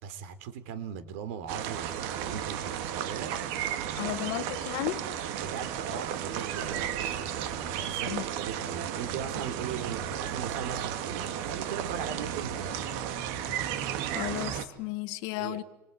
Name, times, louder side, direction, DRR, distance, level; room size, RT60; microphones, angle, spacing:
voice 1, 0.0-4.5 5.3-12.9 15.3-15.6, right 8 dB, 90° right, 12 dB, 3.8 m, -39 dB
sound 1, 1.5-14.6, right 9 dB, 60° right, 2.5 m, -34 dB
voice 2, 4.0-5.0 8.1-8.2 14.1-15.6, left 18 dB, 55° left, 12 dB, 1.7 m, -34 dB
28.0 x 25.5 x 8.4 m, 0.98 s
cardioid pair, 180°, 7 cm